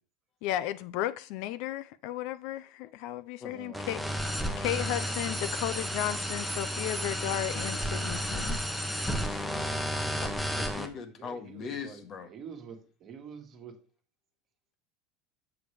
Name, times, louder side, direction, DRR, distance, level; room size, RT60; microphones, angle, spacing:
voice 1, 0.4-8.6 9.2-9.4, left 13 dB, 60° left, 0.4 m, -34 dB
voice 2, 3.5-3.8 4.1-4.2 11.0-12.0 12.3-12.8 13.0-13.7, right 6 dB, 35° right, 1.4 m, -46 dB
sound 1, 3.7-10.8, equal, ahead, 0.8 m, -32 dB
voice 3, 10.0-12.3, left 6 dB, 35° left, 1.0 m, -41 dB
7.0 x 7.0 x 3.2 m
supercardioid pair, 155°, 0 cm